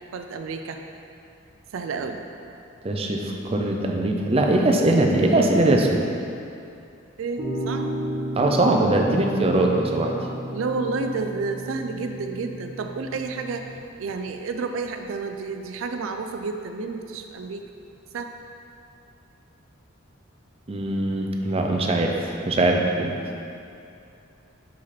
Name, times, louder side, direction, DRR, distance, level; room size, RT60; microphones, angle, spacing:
voice 1, 0.1-0.8 1.7-2.2 7.2-7.9 10.5-13.7 14.0-17.7 18.1-18.3, right 4 dB, 80° right, 5 dB, 0.4 m, -30 dB
voice 2, 2.8-6.0 8.4-10.1 20.7-23.2, right 2 dB, 30° right, 1 dB, 0.5 m, -21 dB
sound 1, 7.4-13.8, right 1 dB, 60° right, 1.3 m, -33 dB
5.6 x 5.1 x 4.2 m, 2.6 s
head